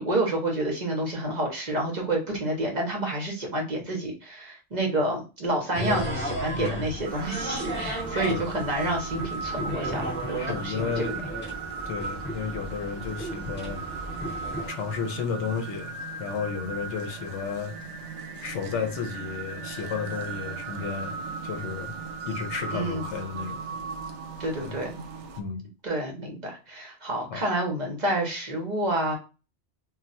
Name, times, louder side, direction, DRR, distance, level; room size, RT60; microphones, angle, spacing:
voice 1, 0.0-10.9 22.7-23.0 24.4-24.9 25.8-29.2, right 1 dB, 45° right, 0.7 m, -29 dB
sound 1, 5.7-14.7, right 1 dB, 10° left, 0.7 m, -34 dB
voice 2, 6.6-6.9 8.1-8.5 10.4-11.1 11.9-13.8 14.7-17.8 18.4-21.2 21.4-21.9 22.3-23.6 24.6-24.8 25.4-25.7 27.3-27.4, left 6 dB, 75° left, 0.9 m, -32 dB
sound 2, 7.0-25.4, right 5 dB, 75° right, 0.8 m, -37 dB
2.3 x 2.2 x 3.9 m
omnidirectional pair, 1.2 m